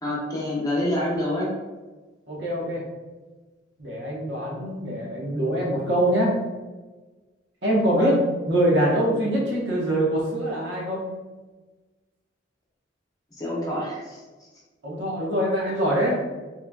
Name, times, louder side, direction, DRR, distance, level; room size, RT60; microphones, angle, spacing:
voice 1, 0.0-1.5 7.9-8.2 13.4-14.2, left 1 dB, 20° left, -5 dB, 0.9 m, -27 dB
voice 2, 2.3-2.8 3.8-6.3 7.6-8.1 8.5-11.1 14.8-16.2, right 1 dB, 70° right, -4 dB, 1.1 m, -24 dB
3.8 x 3.1 x 2.3 m, 1.3 s
head